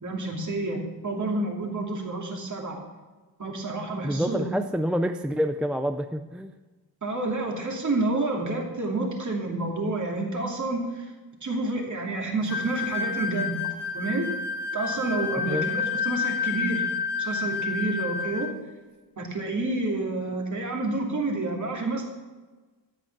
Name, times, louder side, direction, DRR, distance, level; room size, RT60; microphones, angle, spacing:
voice 1, 0.0-2.8 3.4-4.4 7.0-11.0 11.4-13.6 13.9-14.3 14.7-16.9 17.2-18.5 19.2-22.0, right 2 dB, 45° right, 0 dB, 2.7 m, -29 dB
voice 2, 4.0-6.5 15.5-15.6, equal, 5° right, 7 dB, 0.4 m, -27 dB
sound 1, 12.5-18.6, left 5 dB, 85° left, 1.6 m, -30 dB
13.0 x 8.9 x 5.9 m, 1.3 s
wide cardioid pair, 155°, 40 cm